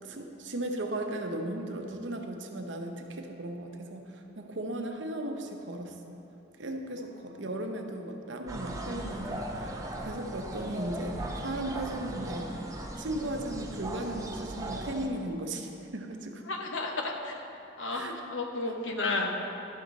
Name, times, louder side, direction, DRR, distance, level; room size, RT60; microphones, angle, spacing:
voice 1, 0.0-6.2 6.6-12.6 13.0-16.4 17.9-18.1, right 1 dB, 75° right, 3 dB, 0.8 m, -36 dB
voice 2, 7.2-7.5 16.5-17.4 17.8-19.3, left 3 dB, 90° left, 2 dB, 1.0 m, -33 dB
sound 1, 8.5-15.1, right 1 dB, 15° right, 0.7 m, -38 dB
12.0 x 6.7 x 4.0 m, 3.0 s
head